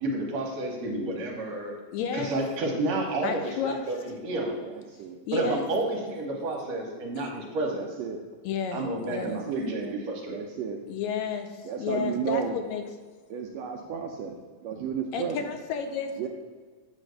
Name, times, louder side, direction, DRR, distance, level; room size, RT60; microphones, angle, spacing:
voice 1, 0.0-1.7 2.1-4.6 5.3-7.9 8.7-10.4, right 2 dB, 65° right, 0 dB, 2.1 m, -30 dB
voice 2, 1.9-2.3 3.2-3.8 5.3-5.6 7.2-7.3 8.4-9.4 10.9-12.8 15.1-16.3, left 7 dB, 80° left, 6 dB, 1.8 m, -32 dB
voice 3, 4.6-5.2 7.7-8.2 9.1-9.9 10.3-10.8 11.6-12.6 13.3-14.3 14.6-15.5 16.2-16.3, right 7 dB, 80° right, 1 dB, 1.5 m, -33 dB
8.4 x 3.2 x 6.3 m, 1.4 s
omnidirectional pair, 3.4 m